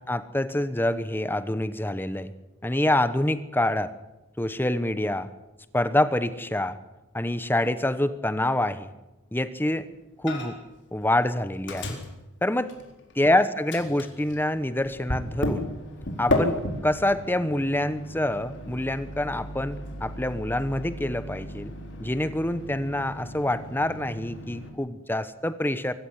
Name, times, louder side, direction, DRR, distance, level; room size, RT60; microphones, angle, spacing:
voice 1, 0.1-2.3 2.6-3.9 4.4-5.3 5.7-6.8 7.1-8.9 9.3-9.9 10.2-10.6 10.9-11.9 12.4-12.7 13.2-15.7 16.2-21.7 22.0-25.9, left 1 dB, 10° left, 13 dB, 1.0 m, -26 dB
Microwave oven, 10.3-10.8 11.0-13.3 13.7-24.7, left 1 dB, 55° left, 4.2 m, -34 dB
24.0 x 15.5 x 9.7 m, 1.0 s
head